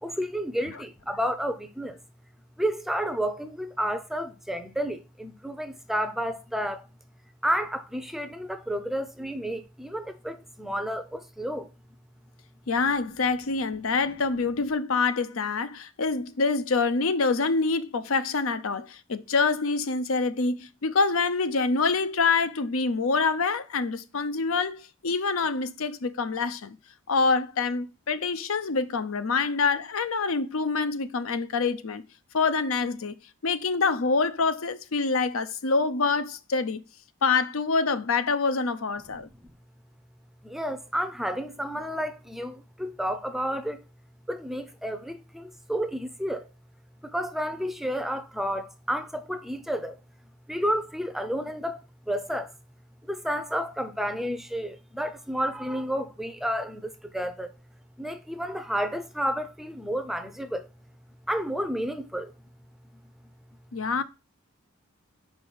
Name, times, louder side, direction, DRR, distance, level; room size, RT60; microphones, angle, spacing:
voice 1, 0.0-2.0 2.6-6.9 7.4-11.7 40.4-43.8 44.3-46.5 47.0-50.0 50.5-52.5 53.1-57.5 58.0-60.7 61.3-62.3, equal, ahead, 0.5 m, -31 dB
voice 2, 12.7-26.8 27.1-32.0 32.3-33.1 33.4-36.8 37.2-39.3 63.7-64.0, left 4 dB, 75° left, 0.6 m, -26 dB
5.3 x 4.8 x 6.2 m
head